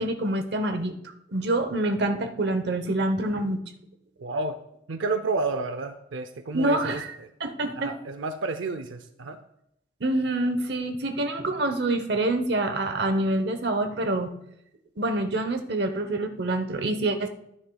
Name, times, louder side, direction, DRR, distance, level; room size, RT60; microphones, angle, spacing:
voice 1, 0.0-3.6 6.5-7.1 7.4-7.9 10.0-14.3 15.0-17.3, right 2 dB, 60° right, 8 dB, 0.9 m, -26 dB
voice 2, 4.2-4.6 4.9-7.3 7.8-9.4, right 3 dB, 90° right, 8 dB, 0.6 m, -31 dB
14.0 x 9.9 x 2.3 m, 0.80 s
head